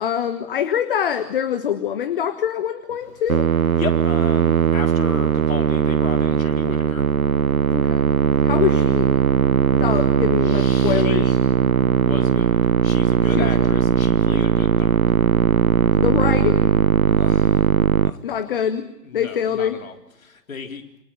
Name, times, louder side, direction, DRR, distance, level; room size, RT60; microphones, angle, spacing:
voice 1, 0.0-3.5 7.7-8.0 8.4-9.2 9.7-11.4 13.4-13.5 16.0-16.7 18.2-18.9 19.1-19.8, left 9 dB, 35° left, 12 dB, 1.4 m, -24 dB
Musical instrument, 3.3-18.1, right 8 dB, 55° right, 0.9 m, -18 dB
voice 2, 3.8-7.1 9.9-10.0 10.4-11.3 12.0-15.0 17.1-17.7 18.0-18.4 19.0-19.9 20.2-20.8, left 5 dB, 55° left, 5 dB, 4.0 m, -34 dB
28.0 x 24.5 x 6.8 m, 0.89 s
figure-of-eight pair, 130°, 49 cm